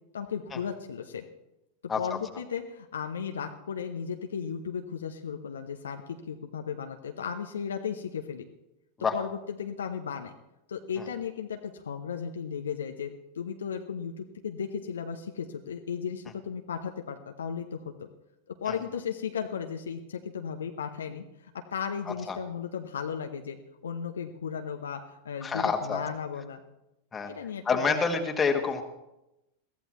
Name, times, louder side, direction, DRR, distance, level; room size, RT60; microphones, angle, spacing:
voice 1, 0.1-1.2 2.0-8.4 9.1-10.3 10.7-18.1 18.5-23.6 23.8-26.6 27.3-28.0, left 7 dB, 65° left, 5 dB, 0.9 m, -35 dB
voice 2, 1.9-2.2 9.0-9.2 11.0-11.1 18.7-18.8 22.3-22.4 25.4-26.0 27.1-27.3 27.6-28.8, left 5 dB, 15° left, 4 dB, 1.7 m, -28 dB
22.0 x 15.0 x 3.1 m, 0.93 s
figure-of-eight pair, 90°, 0 cm